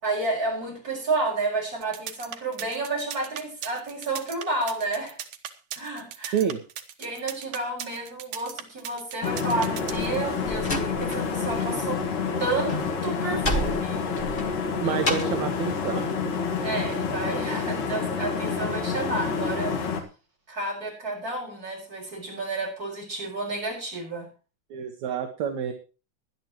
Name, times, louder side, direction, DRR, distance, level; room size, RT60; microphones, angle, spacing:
voice 1, 0.0-5.2 5.7-6.4 7.0-12.0 12.4-12.7 13.0-14.0 16.6-19.9 20.5-24.3, right 2 dB, 25° right, -1 dB, 5.9 m, -31 dB
sound 1, 1.8-10.2, right 10 dB, 85° right, 2.9 m, -37 dB
sound 2, 9.2-20.0, left 5 dB, 80° left, 3.8 m, -28 dB
Slam, 9.9-11.7 12.0-15.5, equal, 30° left, 1.0 m, -31 dB
voice 2, 14.8-16.1 24.7-25.7, right 8 dB, 65° right, 5 dB, 2.5 m, -28 dB
19.5 x 11.5 x 3.1 m, 0.33 s
omnidirectional pair, 3.8 m